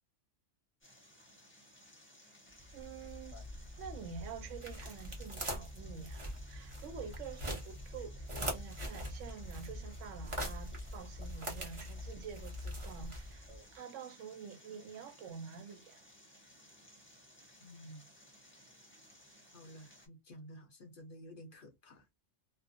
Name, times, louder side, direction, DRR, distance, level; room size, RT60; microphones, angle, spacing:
sound 1, 0.8-20.1, equal, 15° left, 0.6 m, -60 dB
sound 2, 2.6-13.6, equal, 30° right, 0.8 m, -43 dB
voice 1, 2.7-3.4 3.8-13.5 13.7-16.0, right 6 dB, 85° right, 0.9 m, -48 dB
voice 2, 17.6-18.1 19.5-22.2, equal, 55° left, 0.6 m, -52 dB
2.3 x 2.1 x 2.5 m
omnidirectional pair, 1.2 m